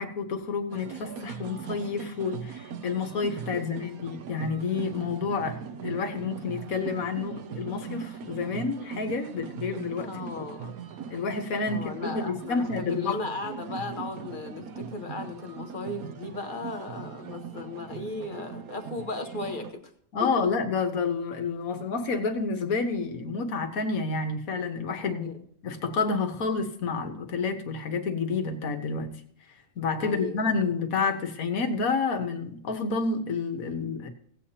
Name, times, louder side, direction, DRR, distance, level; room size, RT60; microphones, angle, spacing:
voice 1, 0.0-10.2 11.1-13.2 20.1-25.3 25.6-29.1 29.8-34.1, left 4 dB, 65° left, 6 dB, 1.6 m, -29 dB
sound 1, 0.7-19.7, right 7 dB, 70° right, 1.2 m, -40 dB
voice 2, 3.5-3.9 10.0-10.7 11.7-19.9 20.4-20.5 25.0-25.4 30.0-30.7, left 3 dB, 35° left, 5 dB, 1.2 m, -36 dB
17.0 x 8.5 x 2.9 m, 0.62 s
omnidirectional pair, 1.6 m